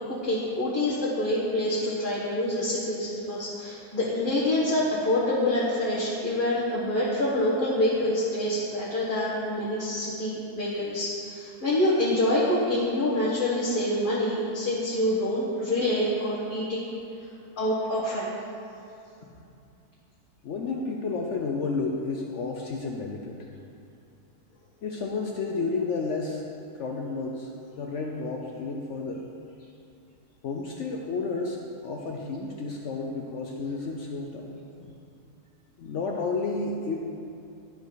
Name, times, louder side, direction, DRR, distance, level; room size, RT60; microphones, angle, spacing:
voice 1, 0.1-16.8 17.6-18.3, left 1 dB, 35° left, -9 dB, 1.4 m, -26 dB
voice 2, 20.4-23.4 24.8-26.5 26.8-27.5 27.8-29.2 30.4-34.6 35.8-37.0, left 4 dB, 60° left, 1 dB, 0.8 m, -31 dB
12.0 x 5.1 x 4.0 m, 2.7 s
omnidirectional pair, 1.6 m